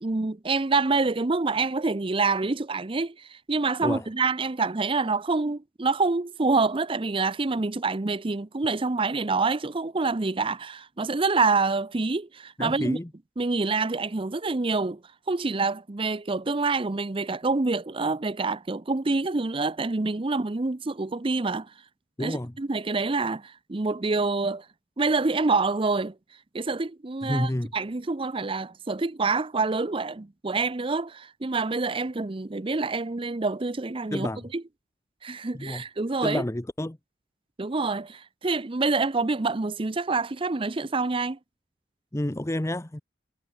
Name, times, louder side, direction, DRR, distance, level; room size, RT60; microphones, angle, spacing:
voice 1, 0.0-13.0 13.4-15.0 15.3-21.7 22.2-24.7 25.0-26.1 26.5-34.6 35.2-36.4 37.6-41.4, right 3 dB, 25° right, 0.6 m, -27 dB
voice 2, 12.6-13.1 22.2-22.5 27.2-27.7 34.1-34.5 35.5-35.8 36.2-37.0 42.1-43.0, left 1 dB, 15° left, 0.8 m, -29 dB
head